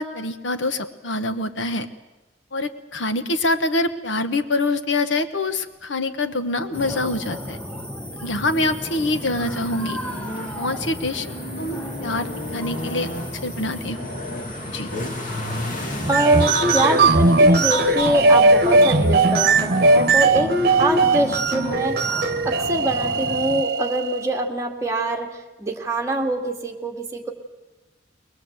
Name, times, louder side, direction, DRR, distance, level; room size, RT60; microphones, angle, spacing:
voice 1, 0.0-1.9 2.5-7.6 8.2-10.0 10.6-11.3 11.6-13.1 13.4-14.0 14.7-14.9, left 2 dB, 80° left, 10 dB, 1.2 m, -25 dB
sound 1, 6.5-23.1, left 1 dB, 40° left, 2.2 m, -36 dB
sound 2, 6.7-23.6, left 1 dB, 5° left, 0.9 m, -34 dB
sound 3, 16.0-24.3, right 3 dB, 55° right, 1.2 m, -18 dB
voice 2, 16.1-22.1 22.5-25.3 25.6-27.3, right 1 dB, 15° right, 2 dB, 2.0 m, -24 dB
22.5 x 21.0 x 8.0 m, 1.1 s
head